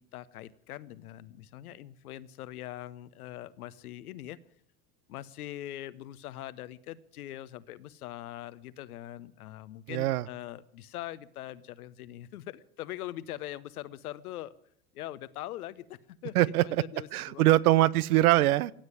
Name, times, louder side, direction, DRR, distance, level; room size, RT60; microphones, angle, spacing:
voice 1, 0.0-4.4 5.1-14.5 14.9-17.5, left 13 dB, 85° left, 16 dB, 0.8 m, -42 dB
voice 2, 9.9-10.3 16.3-16.8 17.1-18.7, right 16 dB, 85° right, 21 dB, 0.6 m, -23 dB
16.5 x 8.1 x 9.6 m, 0.70 s
hypercardioid pair, 85°, 43 cm